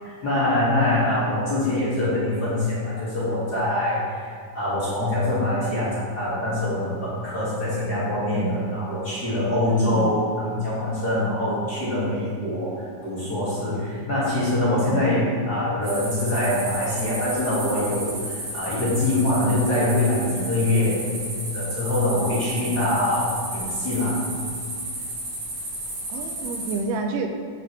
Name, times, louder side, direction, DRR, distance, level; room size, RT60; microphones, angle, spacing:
voice 1, 0.2-12.7 13.0-21.0 21.5-24.1, left 1 dB, 35° left, -9 dB, 2.1 m, -24 dB
voice 2, 9.7-10.2 14.8-15.2 26.1-27.4, right 3 dB, 80° right, 4 dB, 2.2 m, -29 dB
sound 1, 15.8-26.8, right 1 dB, 50° right, 2.6 m, -33 dB
9.3 x 6.7 x 3.3 m, 2.2 s
omnidirectional pair, 3.8 m